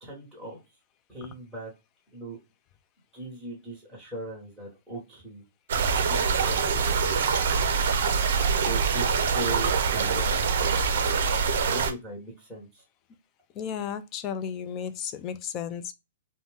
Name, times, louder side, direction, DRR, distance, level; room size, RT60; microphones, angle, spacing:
voice 1, 0.0-0.6 1.1-1.7 2.1-2.4 3.1-5.4 6.0-6.9 8.6-10.8 11.6-12.8, right 1 dB, ahead, 1.3 m, -39 dB
sound 1, 5.7-11.9, right 5 dB, 60° right, 0.5 m, -24 dB
voice 2, 13.5-15.9, left 8 dB, 25° left, 0.3 m, -33 dB
2.6 x 2.1 x 3.4 m
hypercardioid pair, 155°, 0 cm